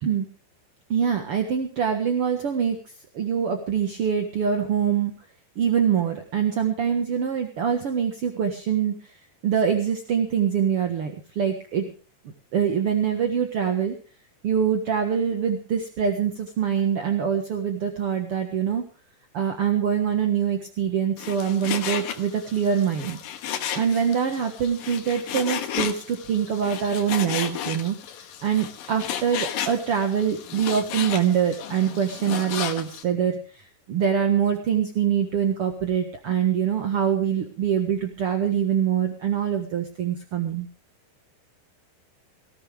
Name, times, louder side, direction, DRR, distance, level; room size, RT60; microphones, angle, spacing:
voice 1, 0.9-2.8 3.1-5.1 5.5-8.9 9.4-11.9 12.5-14.0 14.4-18.8 19.3-23.2 23.7-28.0 28.4-40.7, right 8 dB, 60° right, 4 dB, 1.5 m, -24 dB
Frying (food), 21.2-33.0, left 9 dB, 65° left, 2.7 m, -33 dB
19.0 x 17.0 x 3.5 m, 0.36 s
omnidirectional pair, 4.8 m